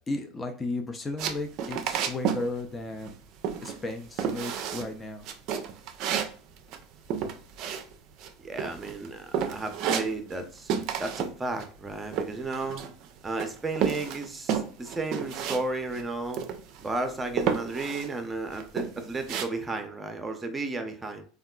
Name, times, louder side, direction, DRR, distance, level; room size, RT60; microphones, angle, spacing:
voice 1, 0.1-3.2 3.6-5.3, left 2 dB, 20° left, 4 dB, 0.5 m, -34 dB
sound 1, 1.2-2.5 2.7-3.2 3.4-3.9 4.2-4.9 5.2-8.3 8.6-9.1 9.3-10.4 10.7-11.3 11.6-13.1 13.4-15.6 15.9-16.0 16.3-16.9 17.4-18.1 18.5-19.4, right 8 dB, 60° right, 0.4 m, -31 dB
voice 2, 8.4-10.7 11.0-12.8 13.2-16.4 16.8-21.2, right 2 dB, 20° right, 6 dB, 0.6 m, -33 dB
3.5 x 2.3 x 2.3 m, 0.42 s
hypercardioid pair, 85°, 0 cm